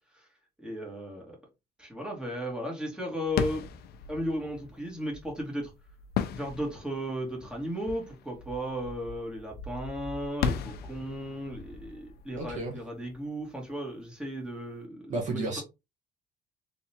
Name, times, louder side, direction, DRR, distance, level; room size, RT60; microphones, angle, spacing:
voice 1, 0.6-1.4 1.8-3.6 4.1-5.7 6.3-15.6, equal, 5° right, 2.0 m, -35 dB
sound 1, 3.3-13.9, left 7 dB, 70° left, 0.6 m, -37 dB
voice 2, 12.4-12.8 15.1-15.6, right 2 dB, 45° right, 1.4 m, -32 dB
3.5 x 3.4 x 2.9 m
cardioid pair, 110°, 17 cm